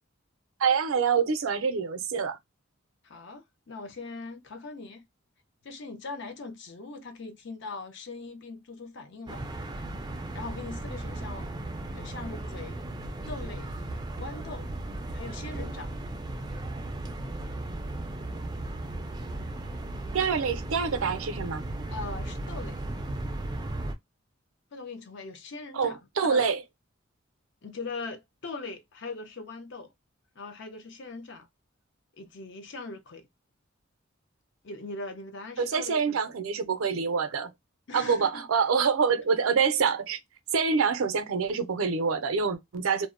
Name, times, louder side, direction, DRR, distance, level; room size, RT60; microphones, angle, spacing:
voice 1, 0.6-2.4 20.1-21.6 25.7-26.6 35.6-37.5 37.9-40.2 40.5-43.1, right 6 dB, 85° right, 0.5 m, -26 dB
voice 2, 3.0-5.0 5.6-9.4 10.3-11.5 11.9-12.8 13.3-13.7 14.2-14.7 15.1-15.9 21.9-22.8 24.7-26.5 27.6-29.9 30.4-31.5 32.2-33.3 34.6-36.2 37.9-38.5 39.4-39.5, left 3 dB, 60° left, 0.6 m, -40 dB
sound 1, 9.3-23.9, right 2 dB, 20° right, 0.3 m, -36 dB
2.6 x 2.0 x 2.4 m
head